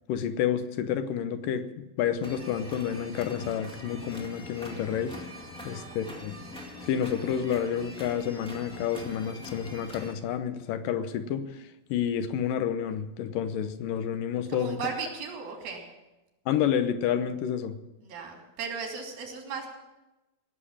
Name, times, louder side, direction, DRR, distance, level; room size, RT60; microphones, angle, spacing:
voice 1, 0.1-1.7 2.0-5.2 5.6-6.3 6.8-11.5 11.9-14.8 16.5-17.8, left 9 dB, 75° left, 10 dB, 2.4 m, -29 dB
sound 1, 2.2-10.1, left 1 dB, 5° left, 1.1 m, -43 dB
voice 2, 5.6-6.1 14.5-15.8 18.0-19.7, right 5 dB, 85° right, 1 dB, 4.7 m, -37 dB
17.5 x 7.4 x 9.9 m, 1.0 s
omnidirectional pair, 4.0 m